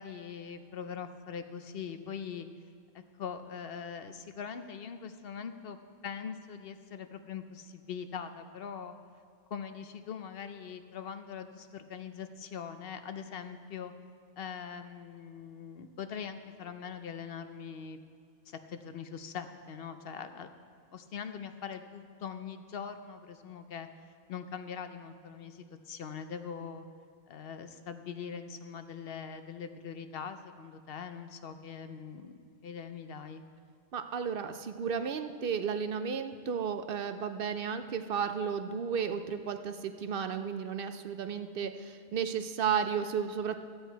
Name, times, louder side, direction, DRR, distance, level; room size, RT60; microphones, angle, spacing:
voice 1, 0.0-2.5 2.9-5.8 6.0-8.9 9.5-13.9 14.4-18.0 18.5-20.5 20.9-23.9 24.3-26.8 27.3-33.4, left 7 dB, 65° left, 9 dB, 0.8 m, -42 dB
voice 2, 33.9-43.6, right 7 dB, 60° right, 8 dB, 0.7 m, -33 dB
14.0 x 8.0 x 4.5 m, 2.3 s
omnidirectional pair, 1.1 m